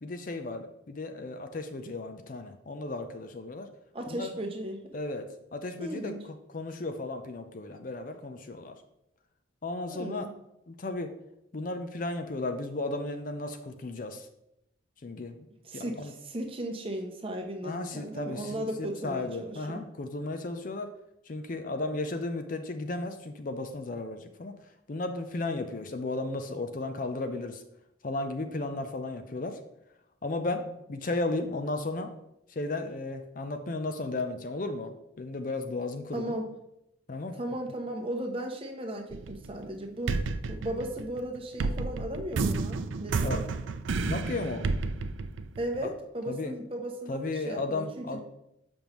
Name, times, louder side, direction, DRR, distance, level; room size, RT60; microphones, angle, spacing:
voice 1, 0.0-3.7 4.1-4.3 4.9-8.8 9.6-10.3 10.7-11.1 11.5-14.3 15.0-15.4 15.7-16.1 17.6-20.9 21.3-24.5 24.9-27.6 28.0-29.6 30.2-32.1 32.5-36.4 37.1-37.4 43.2-43.4 44.0-44.6 45.8-45.9 46.3-46.5 47.1-48.2, left 2 dB, 45° left, 7 dB, 0.5 m, -34 dB
voice 2, 3.9-4.8 5.8-6.2 9.9-10.3 15.6-19.8 36.1-36.5 37.4-43.5 45.6-48.2, right 1 dB, 30° right, 3 dB, 0.8 m, -36 dB
sound 1, 39.1-39.7 40.1-45.9, right 3 dB, 80° right, 0.4 m, -31 dB
6.9 x 5.3 x 3.0 m, 0.82 s
head